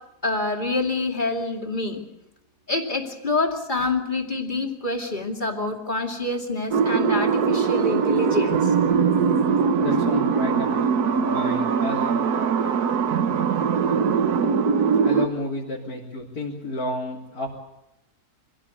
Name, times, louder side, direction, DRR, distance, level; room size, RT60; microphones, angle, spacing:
voice 1, 0.2-2.0 2.7-8.7, left 2 dB, 30° left, 3 dB, 2.7 m, -26 dB
sound 1, 6.7-15.3, right 6 dB, 85° right, 1.6 m, -21 dB
voice 2, 9.8-10.7 11.1-12.2 13.2-13.4 15.0-17.5, left 2 dB, 75° left, -4 dB, 3.9 m, -31 dB
25.0 x 16.5 x 8.4 m, 0.90 s
omnidirectional pair, 1.6 m